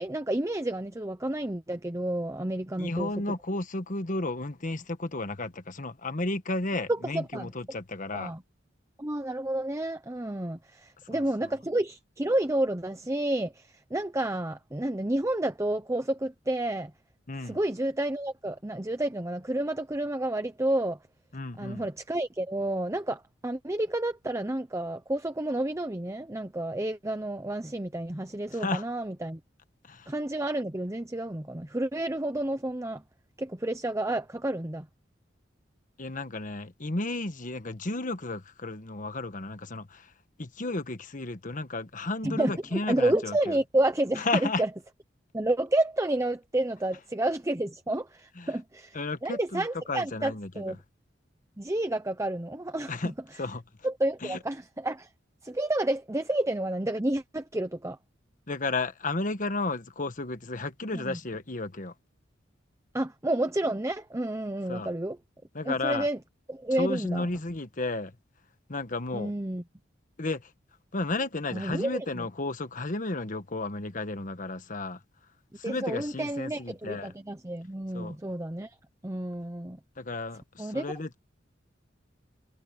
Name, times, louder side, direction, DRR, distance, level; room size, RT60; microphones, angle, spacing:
voice 1, 0.0-3.4 6.9-7.5 8.1-8.4 9.0-16.9 17.4-21.0 21.6-29.4 30.1-33.0 33.4-34.9 42.2-44.7 45.3-49.0 49.2-50.8 51.6-53.1 53.8-55.1 55.4-58.0 60.9-61.2 62.9-65.2 65.6-66.2 66.5-67.3 69.1-69.6 71.5-72.3 75.6-78.7 79.0-79.8 80.6-80.8, right 1 dB, 15° right, 0.9 m, -30 dB
voice 2, 2.8-8.3 11.1-11.2 17.3-17.6 21.3-21.9 28.6-28.8 29.9-30.1 36.0-40.1 40.4-43.6 44.2-44.6 48.4-48.5 48.9-50.7 52.9-53.1 53.4-53.6 54.2-54.4 58.5-61.9 64.7-64.9 65.5-66.1 66.8-68.1 68.7-69.3 70.2-70.4 70.9-75.0 75.6-77.1 77.9-78.2 80.0-81.2, left 2 dB, 45° left, 1.4 m, -33 dB
head